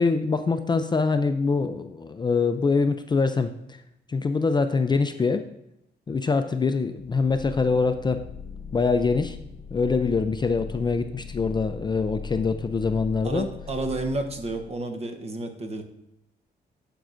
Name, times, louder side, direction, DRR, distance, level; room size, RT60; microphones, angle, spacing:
voice 1, 0.0-3.5 4.1-5.4 6.1-8.2 8.7-9.4 9.7-13.5, left 4 dB, 25° left, 8 dB, 0.4 m, -24 dB
sound 1, 7.0-14.8, left 6 dB, 65° left, 0.8 m, -39 dB
voice 2, 13.2-15.8, right 2 dB, 35° right, 6 dB, 0.9 m, -31 dB
9.1 x 7.2 x 2.6 m, 0.81 s
cardioid pair, 110°, 18 cm